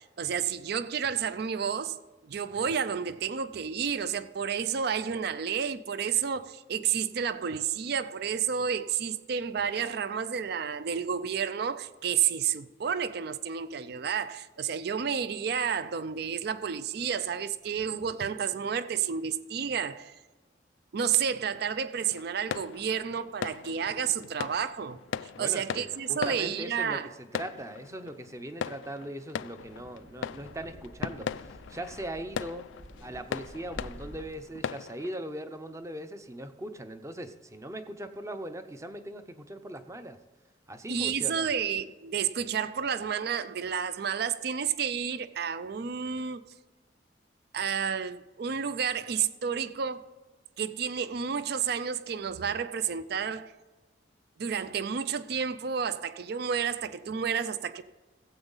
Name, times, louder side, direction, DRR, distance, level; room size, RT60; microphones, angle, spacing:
voice 1, 0.0-20.2 20.9-27.1 40.9-46.4 47.5-50.1 50.6-53.6 54.4-57.8, right 7 dB, 55° right, 0.4 m, -31 dB
sound 1, 22.0-35.2, left 7 dB, 80° left, 0.3 m, -39 dB
voice 2, 25.3-27.0 27.3-32.7 33.0-40.2 40.7-41.5, right 1 dB, 15° right, 0.6 m, -40 dB
Wind, 29.5-34.5, equal, 75° right, 3.0 m, -49 dB
16.0 x 8.0 x 4.0 m
head